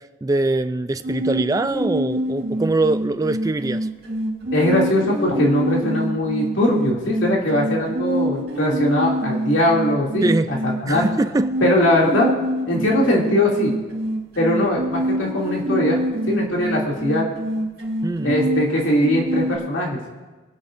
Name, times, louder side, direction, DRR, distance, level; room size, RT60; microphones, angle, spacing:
voice 1, 0.0-3.9 10.2-10.5 10.9-11.6 18.0-18.3, right 2 dB, 20° right, 11 dB, 0.3 m, -23 dB
sound 1, 1.0-19.6, right 1 dB, 50° right, 2.6 m, -26 dB
voice 2, 4.5-11.0 11.6-12.3 12.7-13.7 14.4-17.2 18.2-20.0, left 1 dB, 85° left, -2 dB, 2.6 m, -20 dB
26.5 x 9.0 x 2.6 m, 1.2 s
head